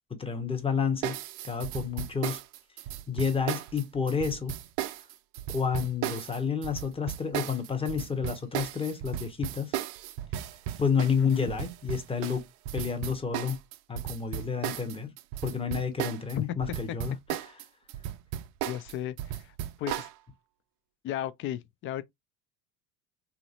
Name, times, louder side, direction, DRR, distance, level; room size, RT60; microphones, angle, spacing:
voice 1, 0.1-1.2 1.4-2.4 3.1-4.5 5.5-9.8 10.8-12.5 12.7-13.6 13.9-15.1 15.4-17.1 17.4-17.5, left 6 dB, 10° left, 0.9 m, -30 dB
sound 1, 1.0-16.4 16.6-20.1, right 12 dB, 50° right, 0.5 m, -35 dB
voice 2, 11.2-11.5 16.4-16.5 18.7-20.1 21.0-22.0, left 12 dB, 30° left, 0.3 m, -35 dB
3.0 x 2.6 x 2.7 m
hypercardioid pair, 80°, 44 cm